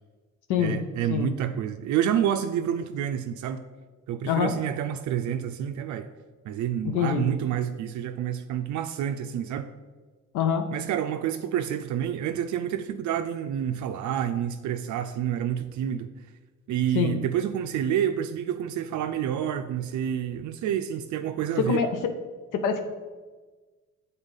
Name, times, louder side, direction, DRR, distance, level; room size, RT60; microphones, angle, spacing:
voice 1, 0.6-3.6 4.1-6.1 6.5-9.7 10.7-16.2 16.7-21.8, right 9 dB, 75° right, 8 dB, 0.4 m, -28 dB
voice 2, 6.8-7.2 10.3-10.7 16.9-17.2 21.6-21.9 22.5-22.8, left 7 dB, 85° left, 7 dB, 0.6 m, -24 dB
7.2 x 4.1 x 5.3 m, 1.3 s
cardioid pair, 90°, 30 cm